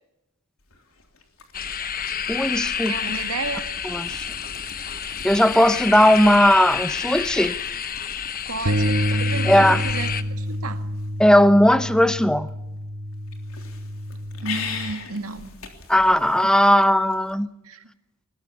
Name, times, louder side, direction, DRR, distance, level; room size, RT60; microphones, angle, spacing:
sound 1, 0.6-17.3, left 5 dB, 70° left, 3.5 m, -42 dB
sound 2, 1.5-10.2, left 7 dB, 40° left, 1.1 m, -29 dB
voice 1, 2.3-2.9 3.8-4.2 5.2-7.5 9.4-9.8 11.2-12.5 15.9-17.5, equal, 5° left, 0.8 m, -17 dB
voice 2, 2.8-3.7 8.5-10.1 10.4-10.9 14.4-15.5 17.6-17.9, right 3 dB, 85° right, 2.0 m, -32 dB
sound 3, 8.7-14.9, equal, 65° right, 1.4 m, -28 dB
21.0 x 20.0 x 7.2 m
head